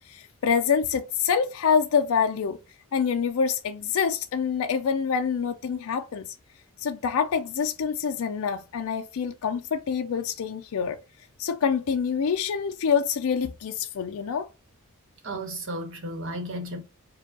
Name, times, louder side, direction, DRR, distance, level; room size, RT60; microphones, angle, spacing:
voice 1, 0.1-2.6 2.9-6.4 6.8-11.0 11.4-14.5, left 6 dB, 70° left, 0.4 m, -26 dB
voice 2, 15.2-16.8, right 1 dB, 55° right, 1.1 m, -33 dB
4.9 x 2.3 x 3.7 m
head